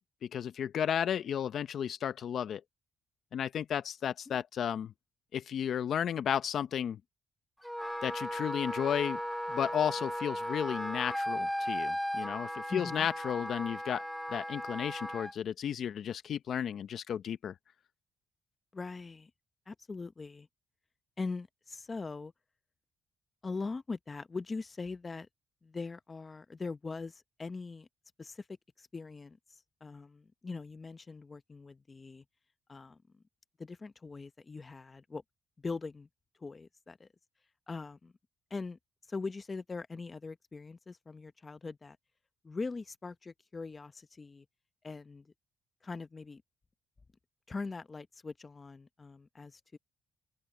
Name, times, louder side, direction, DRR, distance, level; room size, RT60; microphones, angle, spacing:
voice 1, 0.2-2.6 3.3-4.9 5.3-7.0 8.0-9.2 9.5-14.0 14.3-17.5, left 9 dB, 65° left, 0.6 m, -33 dB
Wind instrument woodwind instrument, 7.6-15.3, equal, ahead, 0.7 m, -36 dB
voice 2, 12.7-13.1 18.7-19.3 19.7-20.5 21.2-22.3 23.4-25.3 25.6-27.9 28.2-28.4 28.8-29.4 29.8-32.2 32.7-33.0 33.6-35.2 35.6-36.1 36.4-37.1 37.7-38.1 38.5-38.8 39.1-42.0 42.4-44.4 44.8-45.3 45.8-46.4 47.5-49.8, left 4 dB, 30° left, 1.0 m, -41 dB
open air
cardioid pair, 90°, 0 cm